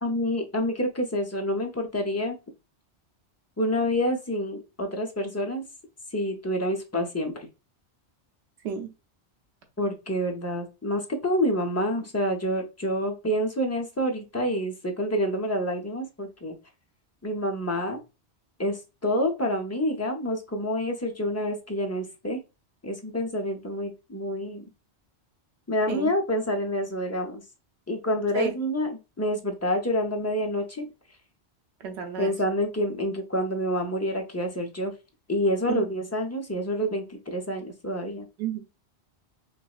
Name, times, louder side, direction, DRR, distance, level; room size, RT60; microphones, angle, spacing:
voice 1, 0.0-2.3 3.6-5.6 6.1-7.5 9.8-16.5 17.2-18.0 18.6-22.4 22.8-24.6 25.7-27.4 27.9-30.9 32.2-34.9 35.3-38.3, equal, 20° left, 2 dB, 0.5 m, -28 dB
voice 2, 31.8-32.3 35.7-35.9 38.4-38.6, right 6 dB, 75° right, 4 dB, 1.0 m, -30 dB
5.8 x 2.1 x 2.4 m, 0.27 s
omnidirectional pair, 1.1 m